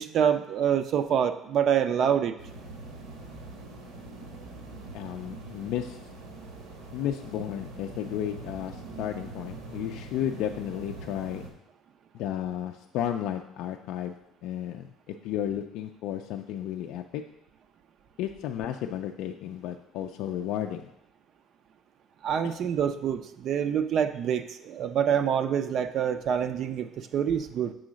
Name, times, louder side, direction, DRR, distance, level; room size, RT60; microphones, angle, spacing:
voice 1, 0.0-2.3 22.2-27.7, right 8 dB, 50° right, 9 dB, 0.4 m, -26 dB
sound 1, 2.4-11.5, right 2 dB, 90° right, 1.4 m, -43 dB
voice 2, 4.9-6.1 6.9-11.5 12.1-17.2 18.2-20.9 22.4-22.6, left 10 dB, 70° left, 4 dB, 0.4 m, -33 dB
6.2 x 3.8 x 6.2 m, 0.81 s
cardioid pair, 145°, 0 cm